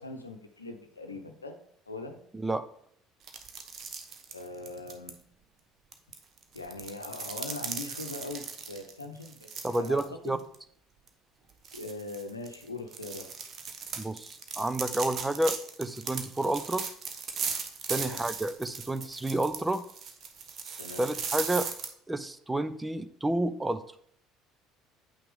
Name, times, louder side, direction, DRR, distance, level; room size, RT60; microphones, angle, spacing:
voice 1, 0.0-1.6 1.9-2.2 4.3-5.2 6.5-10.4 11.7-13.3 17.9-18.2 20.8-21.1, left 2 dB, 90° left, 5 dB, 0.8 m, -41 dB
voice 2, 2.3-2.7 9.6-10.4 14.0-16.9 17.9-19.8 21.0-21.7 22.1-23.8, right 1 dB, 15° right, 12 dB, 0.6 m, -30 dB
sound 1, 3.2-5.1 5.9-10.0 10.4-10.5 11.1-11.2 11.6-21.9, right 6 dB, 45° right, 1.1 m, -38 dB
8.7 x 5.8 x 3.6 m, 0.66 s
figure-of-eight pair, 60°, 0 cm